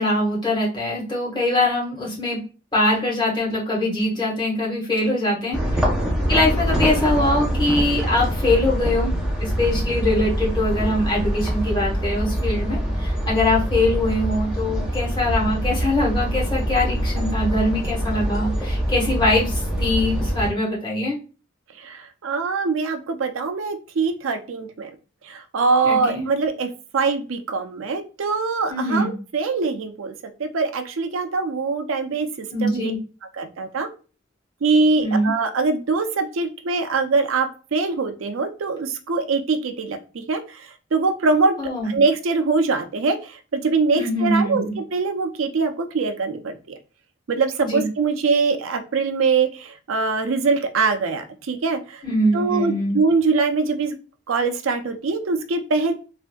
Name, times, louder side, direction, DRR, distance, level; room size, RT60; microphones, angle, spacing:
voice 1, 0.0-2.4 2.7-5.6 6.3-9.1 9.4-21.2 25.8-26.2 28.7-29.1 32.5-33.0 35.0-35.3 41.6-41.9 43.9-44.7 47.6-47.9 52.0-53.0, left 1 dB, 20° left, -5 dB, 1.2 m, -22 dB
sound 1, 5.5-20.5, equal, 5° right, 0.6 m, -24 dB
voice 2, 21.8-24.9 25.2-30.1 30.4-32.9 33.3-33.9 34.6-40.7 40.9-41.6 41.9-46.8 47.3-52.0 52.3-54.0 54.3-55.9, right 4 dB, 85° right, 8 dB, 0.5 m, -23 dB
3.4 x 2.5 x 2.2 m, 0.34 s
head